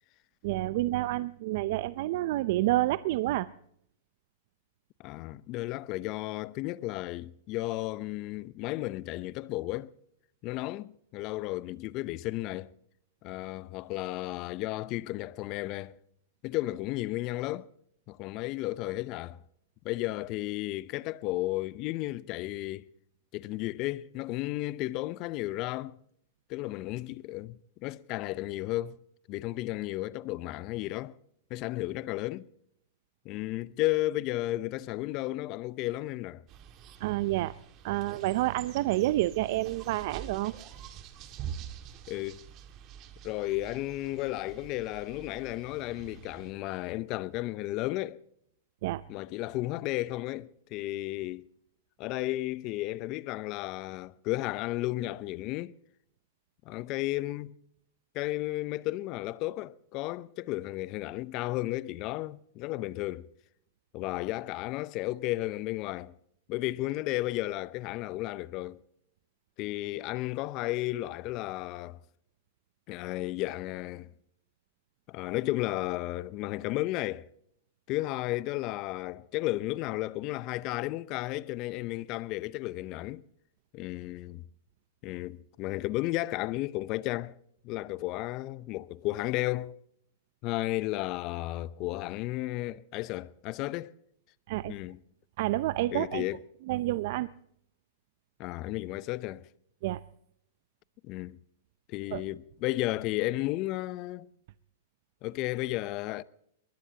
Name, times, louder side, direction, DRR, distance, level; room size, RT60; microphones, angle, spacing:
voice 1, 0.4-3.5 37.0-37.5 37.8-40.5 48.8-49.0 94.5-94.7 95.4-96.2 96.7-97.3 99.8-100.0 102.1-102.2, right 16 dB, 60° right, 0.5 m, -29 dB
voice 2, 5.0-9.9 10.4-12.7 13.2-16.0 16.4-17.7 18.1-19.4 19.8-22.9 23.3-26.0 26.5-29.0 29.3-31.2 31.5-32.5 33.2-36.4 42.1-42.4 43.2-48.2 49.1-51.5 52.0-55.7 56.7-57.5 58.1-63.3 63.9-66.1 66.5-68.8 69.6-72.0 72.9-74.1 75.1-77.3 77.9-83.2 83.7-84.4 85.0-87.4 87.6-89.8 90.4-93.9 94.7-95.0 95.9-96.4 98.4-99.5 101.0-101.4 101.9-104.3 105.2-106.2, left 17 dB, 45° left, 0.7 m, -33 dB
sound 1, 36.5-46.5, right 9 dB, 40° right, 2.0 m, -46 dB
22.0 x 20.5 x 2.9 m
hypercardioid pair, 115°, 0 cm